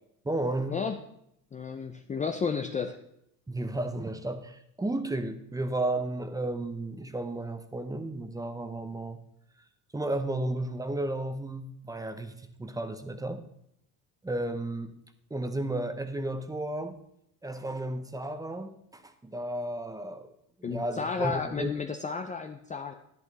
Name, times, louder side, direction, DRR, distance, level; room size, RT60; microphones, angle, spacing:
voice 1, 0.2-0.8 3.5-9.2 9.9-13.4 14.2-14.9 15.3-17.0 17.4-20.3 20.6-21.8, right 1 dB, 10° right, 9 dB, 0.8 m, -33 dB
voice 2, 1.5-3.0 20.6-22.9, left 5 dB, 20° left, 5 dB, 0.5 m, -32 dB
10.5 x 10.5 x 4.0 m, 0.76 s
cardioid pair, 130°, 40 cm